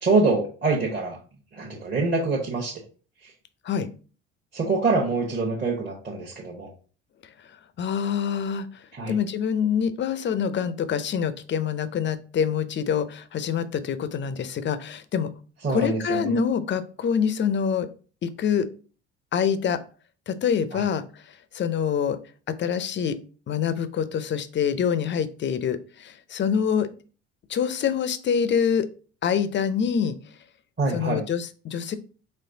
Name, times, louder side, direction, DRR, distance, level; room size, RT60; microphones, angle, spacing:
voice 1, 0.0-1.2 1.5-2.8 3.2-3.3 4.5-6.7 9.0-9.1 15.6-16.4 20.7-20.8 30.8-31.2, right 3 dB, 30° right, -2 dB, 1.1 m, -25 dB
voice 2, 7.8-8.7 9.1-15.3 15.7-17.9 18.2-18.7 19.3-19.8 20.3-21.0 21.5-22.2 22.5-23.2 23.5-26.9 27.5-28.9 29.2-30.2 30.9-31.9, left 7 dB, 30° left, 12 dB, 0.5 m, -25 dB
4.3 x 3.1 x 2.7 m, 0.39 s
hypercardioid pair, 65°, 37 cm